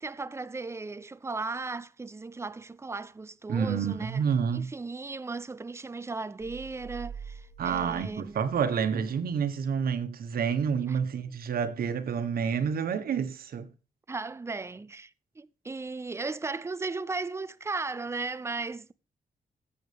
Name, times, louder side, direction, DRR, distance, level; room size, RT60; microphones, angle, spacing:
voice 1, 0.0-4.2 4.5-8.4 10.9-11.0 14.1-15.1 15.4-18.9, right 3 dB, 20° right, 0.5 m, -36 dB
voice 2, 3.5-4.7 7.6-13.7, right 7 dB, 85° right, 1.4 m, -29 dB
sound 1, 6.4-9.4, right 7 dB, 45° left, 4.7 m, -45 dB
19.0 x 7.9 x 3.5 m
wide cardioid pair, 130°, 15 cm